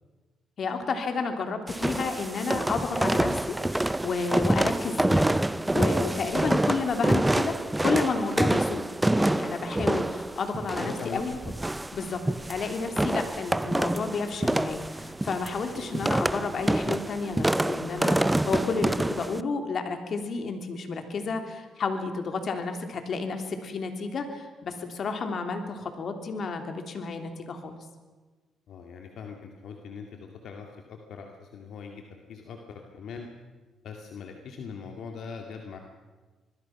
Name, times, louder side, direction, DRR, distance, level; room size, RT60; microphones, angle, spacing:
voice 1, 0.6-5.3 5.7-8.8 9.1-11.4 11.9-12.2 12.5-27.7, left 4 dB, 55° left, 5 dB, 3.2 m, -31 dB
sound 1, 1.7-19.4, right 1 dB, 10° right, 0.6 m, -27 dB
voice 2, 10.8-11.5 12.1-12.2 28.7-33.3 33.8-35.8, left 5 dB, 70° left, 3 dB, 2.3 m, -41 dB
26.0 x 21.0 x 6.0 m, 1.3 s
cardioid pair, 90°, 0 cm